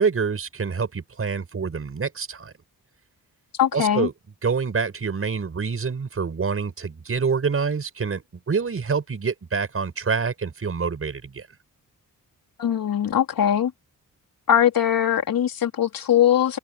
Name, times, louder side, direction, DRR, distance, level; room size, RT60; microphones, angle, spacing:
voice 1, 0.0-2.5 3.7-4.1 4.4-8.2 8.5-11.5, right 5 dB, 40° right, 6.4 m, -26 dB
voice 2, 3.6-4.1 12.6-13.7 14.5-16.6, left 10 dB, 75° left, 3.4 m, -21 dB
wide cardioid pair, 170°, 35 cm